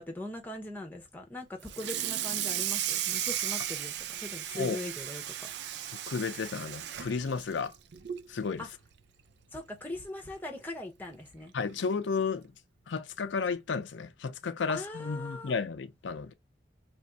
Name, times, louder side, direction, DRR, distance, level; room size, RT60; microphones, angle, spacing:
voice 1, 0.0-5.5 8.6-8.7 9.5-11.5 14.7-15.5, left 1 dB, 10° left, 0.8 m, -41 dB
Water tap faucet / Sink (filling or washing), 1.6-8.3 8.7-8.9 9.3-9.4 9.8-9.9 11.0-11.1 11.6-11.8, right 11 dB, 70° right, 0.4 m, -35 dB
voice 2, 6.1-7.7 8.3-8.7 11.5-12.5 12.9-16.3, left 5 dB, 85° left, 0.5 m, -32 dB
3.1 x 2.5 x 4.4 m
head